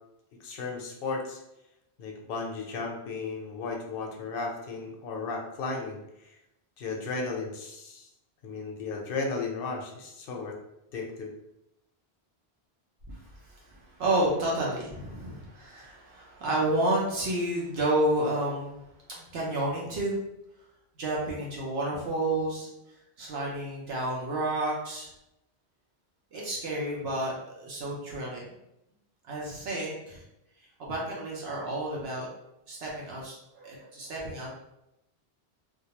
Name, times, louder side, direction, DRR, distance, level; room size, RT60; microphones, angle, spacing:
voice 1, 0.4-1.4 2.0-6.4 6.8-8.1 8.4-10.6 10.9-11.3, left 4 dB, 65° left, 1 dB, 0.7 m, -35 dB
voice 2, 13.1-18.8 19.2-20.2 21.0-22.7 23.2-25.1 26.3-28.4 29.2-30.2 30.8-32.3 32.7-34.5, right 1 dB, 70° right, -4 dB, 0.8 m, -30 dB
2.2 x 2.2 x 2.8 m, 0.85 s
omnidirectional pair, 1.1 m